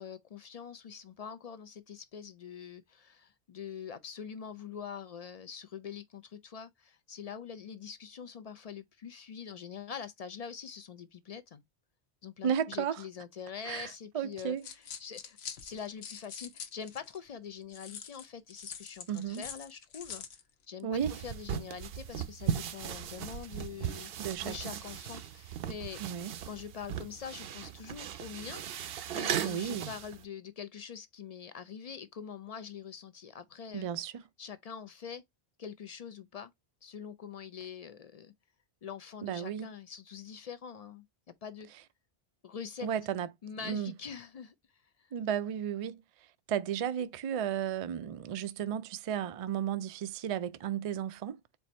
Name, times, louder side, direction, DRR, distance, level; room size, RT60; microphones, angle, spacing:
voice 1, 0.0-11.6 12.2-14.6 15.0-20.2 20.7-24.1 24.4-26.0 26.4-28.6 29.1-33.9 34.4-35.2 35.6-36.5 36.8-38.3 38.8-41.1 41.4-41.7 42.4-42.9 43.4-44.5 45.0-45.1, left 7 dB, 50° left, 0.4 m, -44 dB
voice 2, 12.4-13.0 13.6-14.6 19.1-19.4 20.8-21.2 24.2-24.7 26.0-26.3 29.4-29.9 33.7-34.2 39.2-39.7 42.8-43.3 43.6-43.9 45.1-46.0 46.5-51.4, right 9 dB, 55° right, 0.4 m, -34 dB
sound 1, 14.4-17.2 17.7-20.4, left 7 dB, 85° left, 1.0 m, -45 dB
sound 2, 20.9-30.2, right 9 dB, 70° right, 0.8 m, -38 dB
4.5 x 2.5 x 4.1 m
omnidirectional pair, 1.0 m